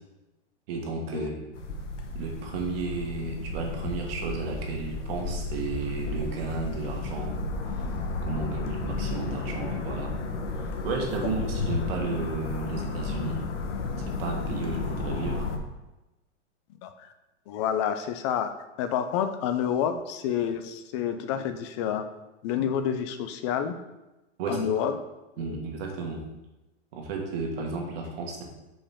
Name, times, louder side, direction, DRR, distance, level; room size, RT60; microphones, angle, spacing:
voice 1, 0.7-1.3 2.1-7.4 8.2-10.1 10.6-13.4 14.1-15.5 24.4-24.7 25.4-26.2 26.9-28.4, right 4 dB, 55° right, 1 dB, 1.7 m, -33 dB
sound 1, 1.5-15.6, left 3 dB, 90° left, 1.1 m, -33 dB
voice 2, 8.4-8.7 11.2-11.3 16.8-17.1 17.5-18.5 18.8-22.0 22.4-23.8 24.5-25.0 25.4-25.5, left 9 dB, 25° left, 8 dB, 0.4 m, -29 dB
6.7 x 5.1 x 3.6 m, 1.0 s
supercardioid pair, 150°, 35 cm